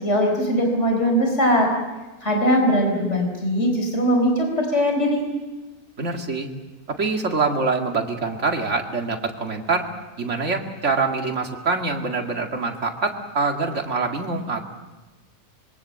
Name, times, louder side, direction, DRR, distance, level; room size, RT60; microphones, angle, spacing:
voice 1, 0.0-1.7 2.2-5.2, equal, 50° left, 2 dB, 4.7 m, -20 dB
voice 2, 6.0-6.5 7.0-9.9 10.2-14.7, right 4 dB, 55° right, 3 dB, 2.5 m, -25 dB
26.0 x 23.0 x 7.6 m, 1.2 s
omnidirectional pair, 1.5 m